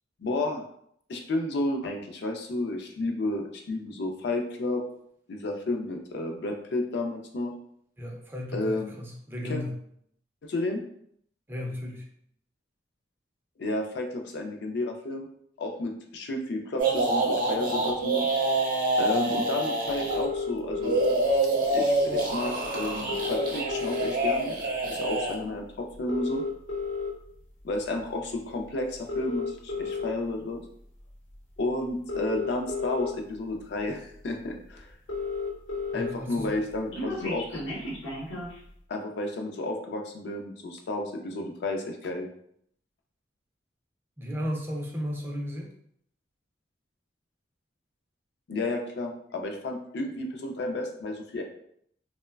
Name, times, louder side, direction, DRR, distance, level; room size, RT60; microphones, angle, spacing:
voice 1, 0.2-0.6 1.1-4.8 5.3-7.5 8.5-8.9 9.4-9.6 10.4-10.8 13.6-15.3 15.6-18.3 19.0-21.0 21.7-24.5 24.9-26.4 27.6-30.6 31.6-34.9 35.9-37.7 38.9-42.3 48.5-51.4, left 2 dB, 60° left, 3 dB, 0.4 m, -31 dB
voice 2, 8.0-9.7 11.5-12.0 35.9-36.5 44.2-45.7, left 1 dB, 10° right, -1 dB, 0.4 m, -34 dB
sound 1, 16.8-20.3 20.8-25.3, right 2 dB, 50° right, 0.6 m, -26 dB
sound 2, 20.1-21.1 22.3-22.4 22.6-22.7 22.9-24.4 24.9-25.1 25.9-27.1 27.8-28.0 28.9-30.1 31.3-31.4 31.9-33.1 33.8-33.9 34.2-34.3 34.5-34.6 34.8-36.1 36.4-38.6, left 4 dB, 80° left, 0.8 m, -32 dB
3.0 x 2.1 x 2.2 m, 0.68 s
head